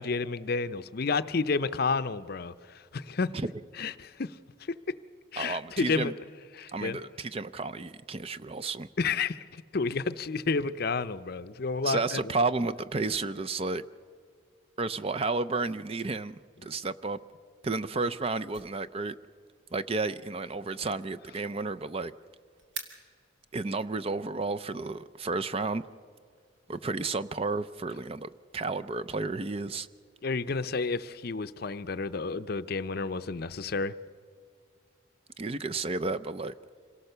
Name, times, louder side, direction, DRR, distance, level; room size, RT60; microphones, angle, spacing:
voice 1, 0.0-3.3 3.8-4.4 5.3-6.1 6.5-7.0 9.0-12.3 30.2-33.9, left 4 dB, 50° left, 13 dB, 0.6 m, -31 dB
voice 2, 5.4-6.1 6.7-8.9 11.8-13.8 14.8-17.2 17.6-19.2 19.7-22.1 23.5-25.8 26.7-29.9 35.4-36.5, right 3 dB, 30° right, 13 dB, 0.5 m, -32 dB
sound 1, 17.9-23.7, right 4 dB, 70° right, 2.5 m, -49 dB
26.5 x 18.0 x 6.7 m, 2.1 s
head